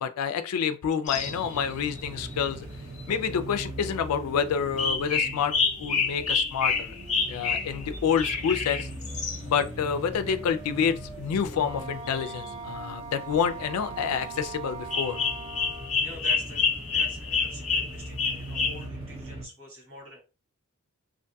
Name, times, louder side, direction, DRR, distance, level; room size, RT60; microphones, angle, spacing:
voice 1, 0.0-2.7 3.1-5.5 5.8-6.9 7.3-8.9 9.4-15.2, left 7 dB, 80° left, 0.4 m, -28 dB
sound 1, 1.1-1.7 3.0-3.1 4.8-9.4 12.1-12.4 14.9-18.8, left 5 dB, 35° left, 0.6 m, -28 dB
sound 2, 1.1-19.5, right 1 dB, 25° right, 0.6 m, -41 dB
Wind instrument woodwind instrument, 11.5-16.0, right 5 dB, 40° right, 0.9 m, -41 dB
voice 2, 16.0-16.6 16.9-20.2, equal, 65° right, 1.4 m, -45 dB
2.5 x 2.2 x 2.6 m
head